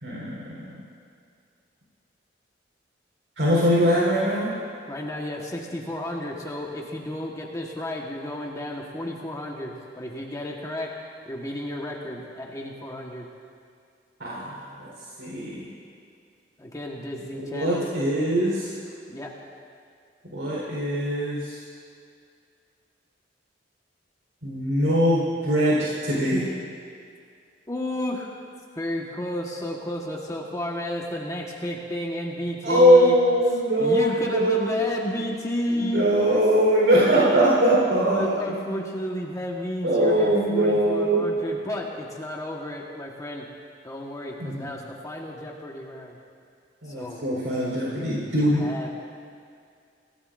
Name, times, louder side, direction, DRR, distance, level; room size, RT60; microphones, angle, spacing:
voice 1, 0.0-0.7 3.4-4.5 14.2-14.9 15.2-15.7 17.3-18.7 20.3-21.6 24.4-26.5 32.6-34.8 35.8-38.4 39.8-41.2 44.4-44.7 46.8-48.7, equal, 85° right, -6 dB, 4.2 m, -22 dB
voice 2, 4.9-10.9 11.3-13.3 16.6-17.9 19.1-19.3 27.7-28.4 28.7-33.2 33.8-36.4 37.4-37.5 38.0-43.5 43.8-46.2 46.8-47.3 48.2-48.9, left 1 dB, 20° left, -2 dB, 1.4 m, -32 dB
27.5 x 17.0 x 2.6 m, 2.3 s
head